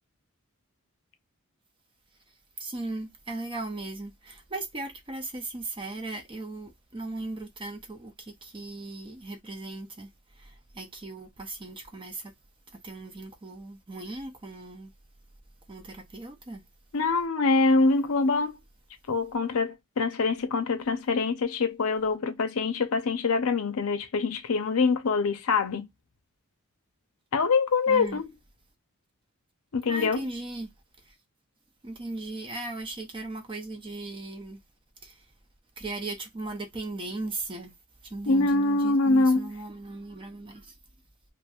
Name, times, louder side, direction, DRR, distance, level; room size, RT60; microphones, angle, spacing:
voice 1, 2.6-10.1 10.3-12.3 12.7-14.9 15.7-16.6 27.9-28.2 29.9-30.7 31.0-31.1 31.8-34.6 35.0-35.3 35.8-37.7 38.0-40.7, right 2 dB, 20° right, 0.5 m, -37 dB
voice 2, 16.9-18.6 19.1-25.9 27.3-28.2 29.7-30.2 38.3-39.5, left 3 dB, 70° left, 0.6 m, -24 dB
2.9 x 2.5 x 2.3 m
head